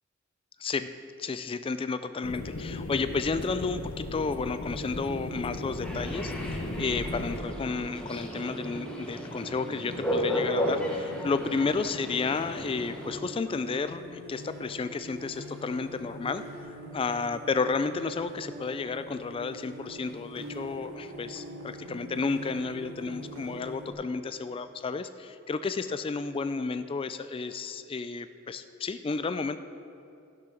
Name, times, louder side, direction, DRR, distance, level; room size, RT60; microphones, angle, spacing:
voice 1, 0.6-0.9 1.2-16.4 16.7-29.6, left 4 dB, 25° left, 12 dB, 0.3 m, -32 dB
sound 1, 2.2-7.4, left 2 dB, 80° left, 0.8 m, -36 dB
sound 2, 4.6-23.9, right 1 dB, 80° right, 2.3 m, -44 dB
sound 3, 5.8-13.2, left 1 dB, 5° left, 1.2 m, -34 dB
15.0 x 6.1 x 5.9 m, 2.6 s
head